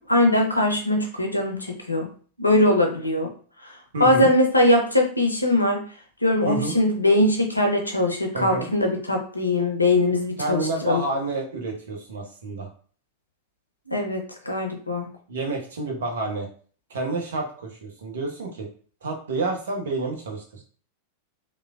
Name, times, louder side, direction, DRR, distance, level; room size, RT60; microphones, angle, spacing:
voice 1, 0.1-2.1 2.4-3.3 3.6-3.7 4.0-5.8 6.2-11.0 13.9-15.1, left 1 dB, 85° left, 2 dB, 0.5 m, -21 dB
voice 2, 3.9-4.3 6.4-6.8 8.3-8.7 10.4-12.7 15.3-16.5 16.9-18.7 19.0-20.6, right 2 dB, 65° right, 1 dB, 0.7 m, -29 dB
3.1 x 2.1 x 2.3 m, 0.43 s
figure-of-eight pair, 90°, 0 cm